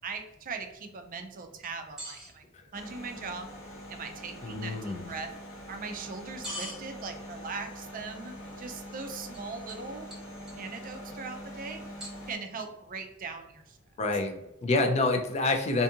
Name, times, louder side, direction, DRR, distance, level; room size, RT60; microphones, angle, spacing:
voice 1, 0.0-2.4 2.7-3.5 3.9-5.3 5.7-10.1 10.6-11.8 12.3-13.8, right 4 dB, 40° right, 6 dB, 0.4 m, -40 dB
sound 1, 1.6-2.3 5.1-5.2 6.4-6.8 9.3-9.4 9.7-9.8 10.1-10.7 12.0-12.6, equal, ahead, 1.0 m, -41 dB
sound 2, 2.7-12.4, equal, 60° left, 1.0 m, -44 dB
voice 2, 4.4-5.1 14.0-15.8, left 2 dB, 30° left, 4 dB, 0.4 m, -28 dB
2.6 x 2.4 x 2.7 m, 0.86 s
head